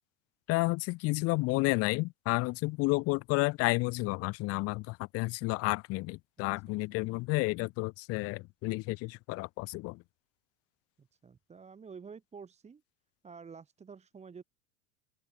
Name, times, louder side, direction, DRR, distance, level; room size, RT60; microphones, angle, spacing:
voice 1, 0.5-10.0, left 23 dB, 40° left, 0.5 m, -31 dB
voice 2, 11.0-12.8 13.2-14.4, right 5 dB, 20° right, 1.2 m, -49 dB
open air
hypercardioid pair, 85°, 36 cm